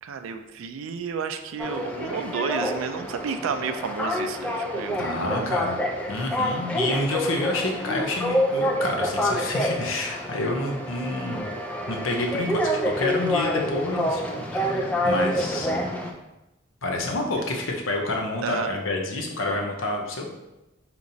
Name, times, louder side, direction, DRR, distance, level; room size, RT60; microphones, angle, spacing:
voice 1, 0.0-5.5 18.4-18.7, right 6 dB, 80° right, 7 dB, 0.3 m, -31 dB
sound 1, 1.6-16.1, equal, 5° left, 0.3 m, -27 dB
voice 2, 5.0-5.8 6.1-11.5 11.9-15.7 16.8-20.3, left 2 dB, 75° left, 1 dB, 0.6 m, -28 dB
5.1 x 2.9 x 2.6 m, 0.95 s
head